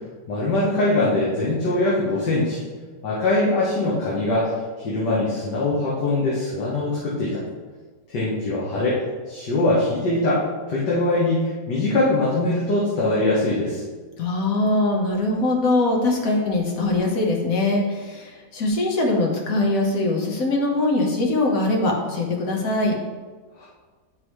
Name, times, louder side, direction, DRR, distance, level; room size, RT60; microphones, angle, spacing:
voice 1, 0.3-2.6 3.0-4.5 4.8-7.4 8.1-9.0 9.3-10.4 10.7-13.8 23.6-23.7, left 2 dB, 80° left, -6 dB, 1.9 m, -22 dB
voice 2, 14.2-22.9, left 2 dB, 55° left, 0 dB, 1.6 m, -22 dB
11.0 x 3.9 x 3.2 m, 1.4 s
omnidirectional pair, 1.8 m